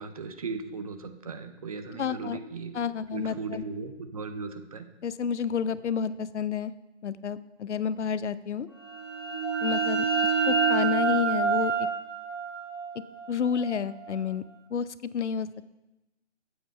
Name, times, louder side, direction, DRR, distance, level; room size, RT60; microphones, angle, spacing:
voice 1, 0.0-2.8 3.1-4.9, right 4 dB, 30° right, 9 dB, 0.6 m, -37 dB
voice 2, 2.0-2.4 2.7-3.6 5.0-6.7 7.0-8.7 9.6-10.1 10.5-11.9 13.3-14.4 14.7-14.9 15.1-15.5, left 7 dB, 75° left, 16 dB, 0.6 m, -30 dB
sound 1, 8.9-14.4, right 5 dB, 25° left, 0.3 m, -28 dB
8.7 x 7.8 x 5.4 m, 1.0 s
hypercardioid pair, 155°, 35 cm